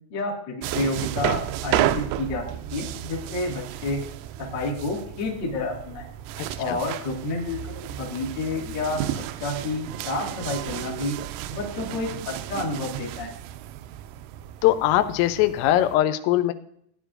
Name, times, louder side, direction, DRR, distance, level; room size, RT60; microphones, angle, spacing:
voice 1, 0.1-2.4 2.7-4.0 4.4-6.0 6.6-11.2 11.5-13.3, left 2 dB, 55° left, -3 dB, 1.2 m, -30 dB
sound 1, 0.6-16.0, right 13 dB, 85° right, 3.0 m, -32 dB
voice 2, 6.4-6.8 14.6-16.5, left 13 dB, 85° left, 10 dB, 3.4 m, -21 dB
16.0 x 10.0 x 2.6 m, 0.69 s
omnidirectional pair, 5.8 m